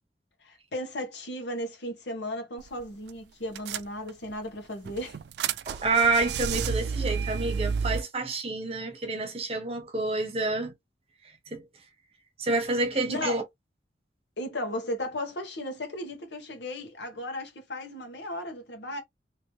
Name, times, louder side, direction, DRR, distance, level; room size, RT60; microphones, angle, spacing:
voice 1, 0.4-5.2 13.1-13.4 14.4-19.0, left 1 dB, 80° left, 1.3 m, -35 dB
sound 1, 2.6-2.8 3.1-3.2 3.6-4.3 4.8-8.0, right 6 dB, 75° right, 0.3 m, -31 dB
voice 2, 5.7-10.7 11.5-11.6 12.4-13.4, right 3 dB, 35° right, 0.8 m, -28 dB
3.1 x 3.0 x 2.9 m
head